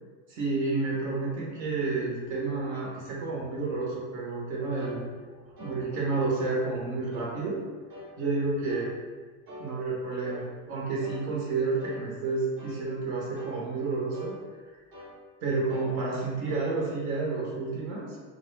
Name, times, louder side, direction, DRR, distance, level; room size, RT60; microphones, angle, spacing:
voice 1, 0.3-5.1 5.6-7.6 8.2-8.9 9.6-14.3 15.4-18.1, right 3 dB, 60° right, -5 dB, 0.8 m, -30 dB
sound 1, 4.8-5.0 5.6-5.8 6.3-6.6 7.1-7.4 7.9-8.1 8.7-8.9 9.5-9.7 10.2-10.5 11.0-11.3 11.8-12.0 12.6-12.8 13.4-13.6 14.1-14.4 14.9-15.2 15.7-15.9 16.5-16.7, left 1 dB, 30° right, 0.7 m, -45 dB
2.3 x 2.0 x 3.1 m, 1.5 s
supercardioid pair, 145°, 46 cm